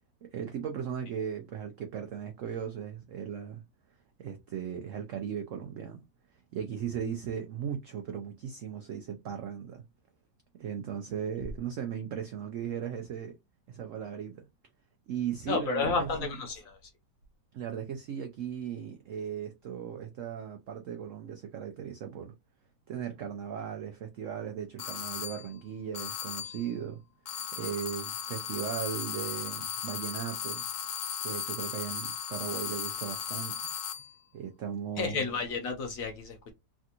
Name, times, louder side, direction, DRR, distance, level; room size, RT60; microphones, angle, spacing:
voice 1, 0.2-3.6 4.2-6.0 6.5-9.8 10.6-13.4 13.7-14.5 15.1-16.3 17.5-22.3 22.9-27.0 27.3-30.6 31.2-33.7 34.3-35.2, right 8 dB, 85° right, 0.6 m, -37 dB
voice 2, 15.5-16.8 35.0-36.5, left 4 dB, 65° left, 0.9 m, -31 dB
sound 1, 24.8-25.5 25.9-26.7 27.3-34.1, left 8 dB, 90° left, 1.3 m, -36 dB
3.3 x 2.5 x 2.7 m
omnidirectional pair, 1.9 m